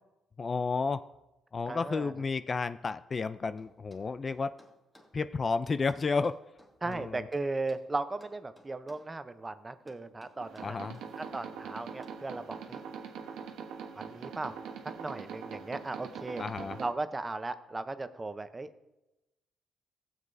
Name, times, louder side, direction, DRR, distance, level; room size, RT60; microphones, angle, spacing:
voice 1, 0.4-1.0 1.5-4.5 5.1-6.4 6.9-7.3 10.6-11.0 16.4-16.8, left 4 dB, 35° left, 13 dB, 0.3 m, -32 dB
voice 2, 1.7-2.1 6.8-10.8 11.3-12.8 13.9-14.6 15.0-16.4 16.8-18.7, right 3 dB, 20° right, 11 dB, 0.6 m, -36 dB
sound 1, 3.6-5.1 5.9-7.9 8.2-9.1 9.9-11.1 12.0-12.3, left 1 dB, 10° left, 1.6 m, -59 dB
sound 2, 10.4-16.9, right 6 dB, 90° right, 0.9 m, -43 dB
16.5 x 7.4 x 2.6 m, 0.95 s
cardioid pair, 90°, 0 cm